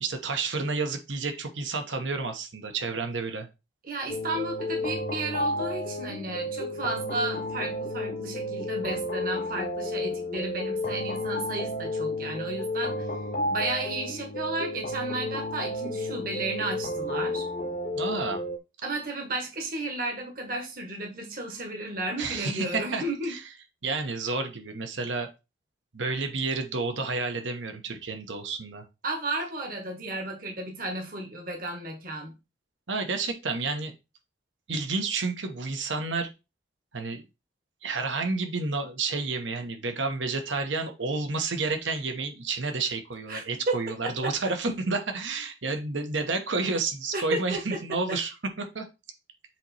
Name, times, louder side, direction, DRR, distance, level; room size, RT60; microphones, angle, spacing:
voice 1, 0.0-3.5 18.0-18.4 22.2-23.4 23.8-25.3 25.9-28.8 32.9-33.9 34.7-36.3 36.9-37.2 37.8-48.3 48.6-48.9, right 3 dB, 80° right, 6 dB, 1.1 m, -30 dB
voice 2, 3.8-13.1 13.5-17.4 18.8-23.3 29.0-32.4 43.3-43.7 47.1-47.8 48.1-48.2, right 2 dB, 50° right, 2 dB, 1.2 m, -33 dB
sound 1, 4.1-18.6, left 1 dB, 45° left, 0.8 m, -32 dB
7.5 x 3.1 x 4.2 m, 0.27 s
head